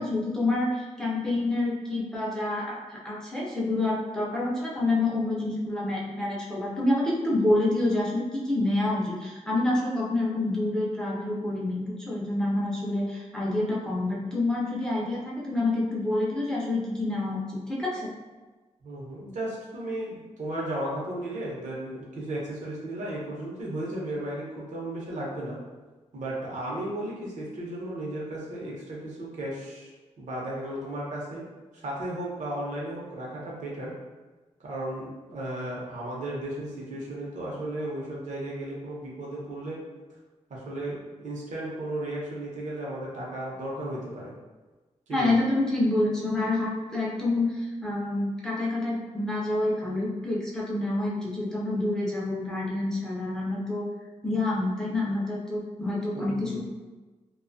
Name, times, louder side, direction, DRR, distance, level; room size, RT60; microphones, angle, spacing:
voice 1, 0.0-18.1 45.1-53.9 54.2-56.6, left 2 dB, 5° left, -5 dB, 0.4 m, -27 dB
voice 2, 18.8-25.6 26.1-31.5 31.7-33.9 34.6-39.8 40.5-44.3 45.1-45.4 56.1-56.6, right 1 dB, 80° right, -5 dB, 0.8 m, -35 dB
2.5 x 2.2 x 2.5 m, 1.2 s
wide cardioid pair, 165°, 12 cm